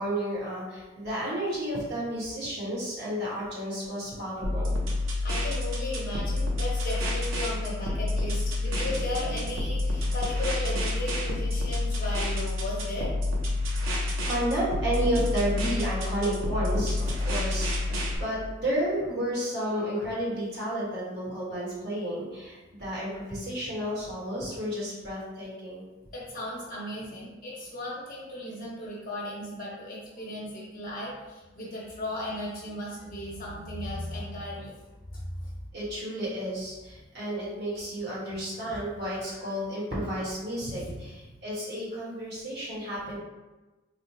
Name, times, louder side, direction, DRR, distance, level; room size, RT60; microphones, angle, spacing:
voice 1, 0.0-4.7 8.8-9.4 13.8-25.8 35.7-41.1 41.4-43.2, right 1 dB, 50° right, -7 dB, 1.3 m, -32 dB
sound 1, 4.4-18.1, left 2 dB, 80° right, 0.7 m, -29 dB
voice 2, 5.2-13.1 17.9-18.0 26.1-34.8 35.1-35.2 38.7-38.8 40.6-40.9, left 1 dB, 45° left, -5 dB, 1.0 m, -36 dB
3.1 x 2.1 x 4.2 m, 1.1 s
head